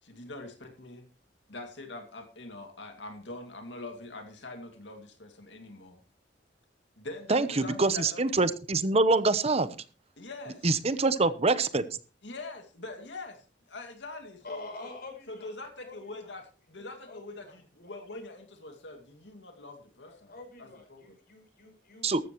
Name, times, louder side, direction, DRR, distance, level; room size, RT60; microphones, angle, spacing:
voice 1, 0.0-1.0 1.5-6.0 7.0-8.2 10.2-10.7 12.2-13.4 13.7-15.0 15.3-20.3 20.6-21.2, left 2 dB, 80° left, 5 dB, 2.4 m, -43 dB
voice 2, 7.3-9.7 10.6-11.8 22.0-22.2, right 3 dB, 35° right, 14 dB, 0.9 m, -25 dB
voice 3, 14.4-15.5 15.8-16.3 16.8-17.9 20.0-22.3, left 2 dB, 55° left, 3 dB, 5.4 m, -47 dB
14.0 x 13.0 x 3.1 m, 0.36 s
head